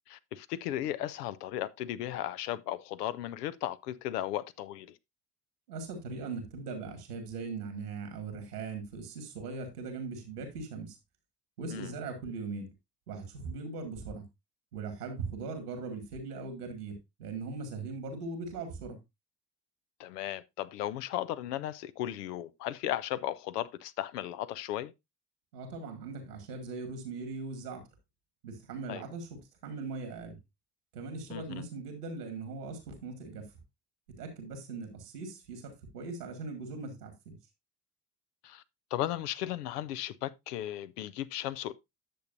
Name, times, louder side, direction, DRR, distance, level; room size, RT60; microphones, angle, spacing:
voice 1, 0.1-5.0 11.7-11.9 20.0-24.9 28.9-29.0 31.3-31.7 38.4-38.6 38.9-41.7, left 13 dB, 85° left, 0.6 m, -36 dB
voice 2, 5.7-11.0 11.6-12.7 13.1-14.2 14.7-19.0 25.5-27.8 28.4-30.4 30.9-33.4 34.2-37.4, right 4 dB, 90° right, 2.1 m, -40 dB
10.0 x 6.9 x 2.6 m
hypercardioid pair, 50°, 46 cm